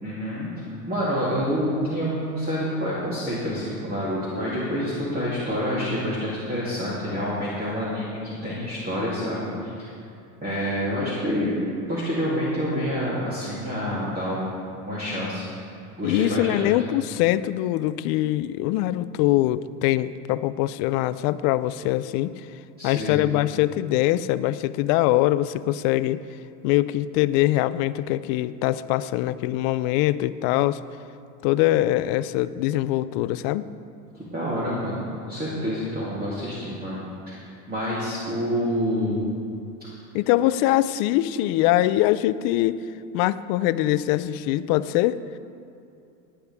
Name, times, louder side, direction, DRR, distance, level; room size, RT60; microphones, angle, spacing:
voice 1, 0.0-9.9 10.4-11.5 11.9-15.5 16.0-16.7 22.8-23.2 34.1-37.4 37.7-39.2 39.8-39.9, equal, 20° right, -9 dB, 3.1 m, -28 dB
voice 2, 16.0-22.3 22.8-26.2 26.6-30.8 31.4-33.6 40.1-42.8 43.1-45.2, left 15 dB, 50° left, 14 dB, 0.5 m, -23 dB
18.0 x 9.9 x 3.5 m, 2.7 s
supercardioid pair, 110°, 49 cm